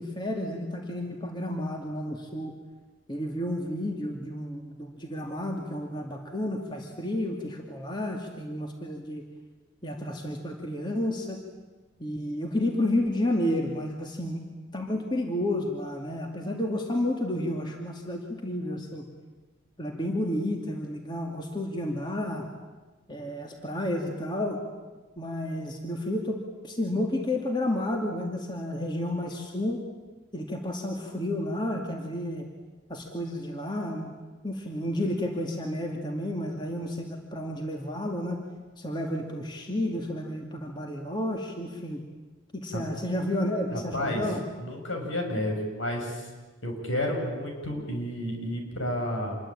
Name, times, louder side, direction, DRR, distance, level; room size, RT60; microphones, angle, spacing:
voice 1, 0.0-2.5 3.1-9.2 9.8-11.4 12.0-14.4 14.7-19.1 19.8-22.5 23.1-24.6 25.2-29.8 30.3-32.5 32.9-34.1 34.4-38.4 38.8-42.0 42.5-44.4, left 1 dB, 20° left, 2 dB, 2.4 m, -31 dB
voice 2, 43.7-44.3 44.6-46.2 46.6-49.4, left 1 dB, 75° left, 2 dB, 6.8 m, -31 dB
27.0 x 22.5 x 8.8 m, 1.3 s
head